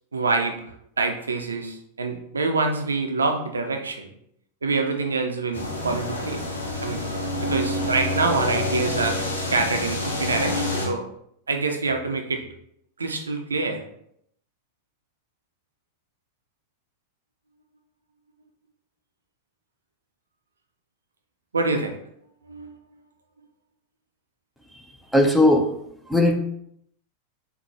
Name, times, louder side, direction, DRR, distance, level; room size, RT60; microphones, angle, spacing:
voice 1, 0.1-0.6 1.0-4.1 4.6-6.5 6.8-7.0 7.4-11.0 11.5-12.4 13.0-13.8 21.5-22.0 22.5-22.7, right 3 dB, 75° right, 4 dB, 0.4 m, -26 dB
sound 1, 5.5-10.9, left 1 dB, 75° left, 0.6 m, -27 dB
voice 2, 25.1-25.7 26.1-26.4, left 1 dB, 5° left, 3 dB, 0.4 m, -17 dB
4.0 x 2.1 x 3.0 m, 0.72 s
figure-of-eight pair, 90°, 0 cm